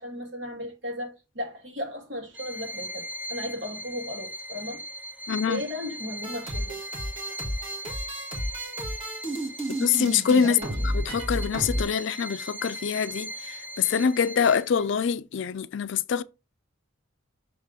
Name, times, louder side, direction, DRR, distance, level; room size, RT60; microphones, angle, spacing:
voice 1, 0.0-4.8 5.4-6.8 10.4-10.9, left 1 dB, 65° right, 2.7 m, -36 dB
Bowed string instrument, 2.3-14.8, equal, 10° right, 0.4 m, -39 dB
voice 2, 5.3-5.6 9.8-10.6 10.9-13.3 13.8-16.2, left 6 dB, 65° left, 0.4 m, -24 dB
sound 1, 6.2-11.8, equal, 30° right, 1.7 m, -32 dB
6.3 x 3.7 x 4.9 m
head